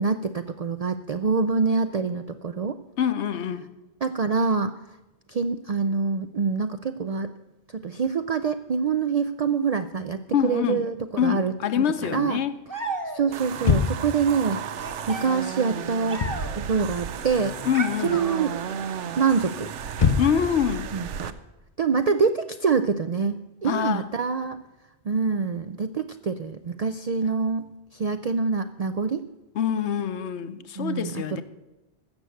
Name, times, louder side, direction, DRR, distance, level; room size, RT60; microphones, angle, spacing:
voice 1, 0.0-2.8 4.0-4.7 5.3-7.3 7.7-12.4 13.1-16.3 16.6-17.6 18.0-18.5 19.1-19.7 20.9-21.3 21.8-24.6 25.0-29.3 30.8-31.4, right 5 dB, 60° right, 0.4 m, -26 dB
voice 2, 3.0-3.6 10.3-10.8 11.2-12.6 17.6-18.2 20.2-20.9 23.6-24.1 29.5-31.4, left 9 dB, 70° left, 1.0 m, -25 dB
sound 1, 12.7-13.5 14.7-16.7 17.7-18.8, right 3 dB, 15° right, 1.2 m, -35 dB
sound 2, 13.3-21.3, right 8 dB, 85° right, 1.0 m, -34 dB
sound 3, 13.6-14.2 16.0-16.5 16.8-17.7 18.0-18.4 19.1-20.6, left 5 dB, 35° left, 0.6 m, -25 dB
15.0 x 6.4 x 7.8 m
omnidirectional pair, 1.2 m